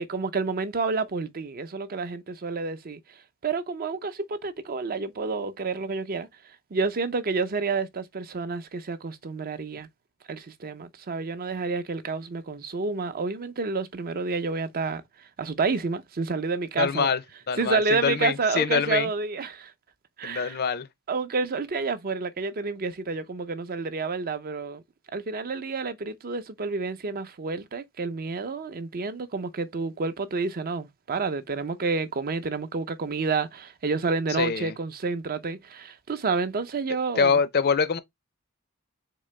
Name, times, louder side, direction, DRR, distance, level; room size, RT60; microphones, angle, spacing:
voice 1, 0.0-3.0 3.4-6.3 6.7-9.9 10.3-17.1 17.6-19.7 20.2-20.6 21.1-24.8 25.1-37.4, right 4 dB, 45° right, 0.6 m, -29 dB
voice 2, 16.8-17.2 17.5-19.1 20.2-20.9 34.4-34.7 37.2-38.0, left 6 dB, 45° left, 0.6 m, -24 dB
3.8 x 3.7 x 3.2 m
head